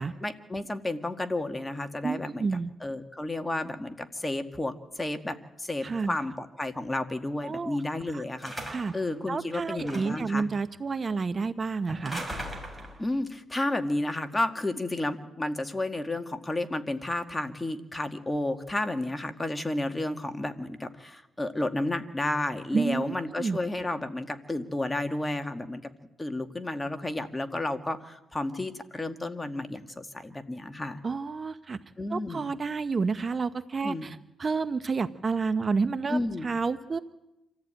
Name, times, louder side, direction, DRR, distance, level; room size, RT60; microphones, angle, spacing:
voice 1, 0.0-2.5 2.8-8.5 8.9-10.4 13.0-25.8 26.2-31.0 32.0-32.4 33.8-34.1 36.1-36.5, left 2 dB, 15° left, 7 dB, 1.9 m, -32 dB
voice 2, 2.0-2.7 5.8-6.2 7.4-7.8 8.1-8.2 8.7-8.9 9.3-12.2 22.7-23.6 31.0-31.8 32.1-37.0, right 4 dB, 35° right, 12 dB, 0.8 m, -30 dB
sound 1, 8.4-9.0 9.8-10.3 11.9-13.0, right 1 dB, ahead, 5.8 m, -38 dB
26.5 x 14.5 x 9.0 m, 0.96 s
cardioid pair, 90°, 0 cm